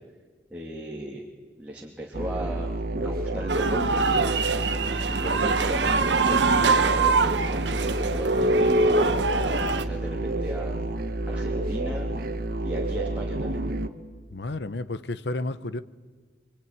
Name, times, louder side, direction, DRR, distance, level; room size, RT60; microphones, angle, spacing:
voice 1, 0.5-1.2 1.6-4.0 5.1-10.8 11.2-12.1 12.6-13.6, equal, 10° right, 2.6 m, -36 dB
sound 1, 2.1-13.9, right 1 dB, 55° right, 1.4 m, -28 dB
sound 2, 3.5-9.8, right 4 dB, 75° right, 1.4 m, -25 dB
Bass guitar, 8.3-12.0, right 2 dB, 40° left, 5.1 m, -42 dB
voice 2, 14.3-15.8, left 2 dB, 65° left, 0.9 m, -31 dB
24.5 x 24.0 x 9.6 m
head